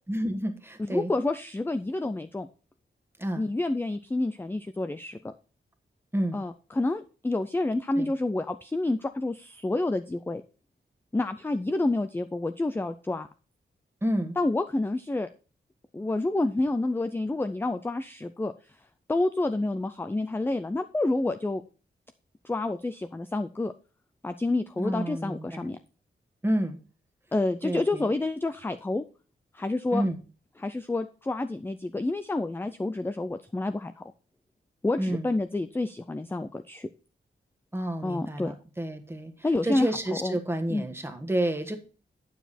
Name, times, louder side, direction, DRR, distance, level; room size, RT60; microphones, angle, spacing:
voice 1, 0.1-1.1 3.2-3.5 6.1-6.4 8.0-8.1 14.0-14.4 24.8-25.7 26.4-26.8 27.6-28.1 29.9-30.2 35.0-35.3 37.7-39.3 39.6-41.8, right 1 dB, 10° right, 6 dB, 1.3 m, -30 dB
voice 2, 0.8-2.5 3.4-5.3 6.3-10.4 11.1-13.3 14.4-15.3 15.9-18.5 19.1-21.6 22.4-23.7 24.2-25.8 27.3-29.0 29.5-30.1 30.6-34.0 34.8-36.9 38.0-38.5 39.4-39.9 40.2-40.4 40.7-40.9, left 2 dB, 10° left, 10 dB, 0.4 m, -28 dB
9.2 x 7.1 x 4.2 m, 0.36 s
wide cardioid pair, 140°, 20 cm